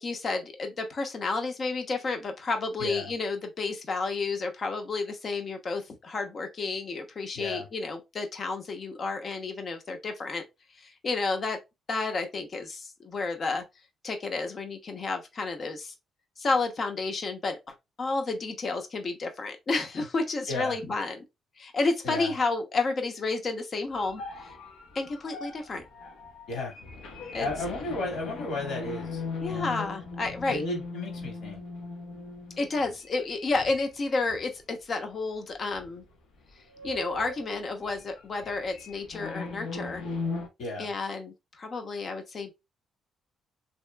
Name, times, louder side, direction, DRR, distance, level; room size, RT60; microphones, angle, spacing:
voice 1, 0.0-10.4 10.8-11.6 11.9-13.6 14.0-15.9 16.4-21.2 21.6-24.5 24.9-25.8 27.3-27.5 29.4-30.6 32.6-36.0 36.8-40.0 40.8-42.5, left 3 dB, 45° left, 0.8 m, -31 dB
voice 2, 2.8-3.1 7.3-7.7 20.5-20.8 22.0-22.3 26.5-26.8 27.4-29.2 29.5-29.7 30.5-31.6 40.6-40.9, left 2 dB, 70° left, 1.8 m, -34 dB
sound 1, 23.9-34.6 35.0-35.2 35.7-36.1 36.4-40.5, left 3 dB, 90° left, 1.1 m, -39 dB
3.0 x 2.8 x 2.2 m
cardioid pair, 90°, 0 cm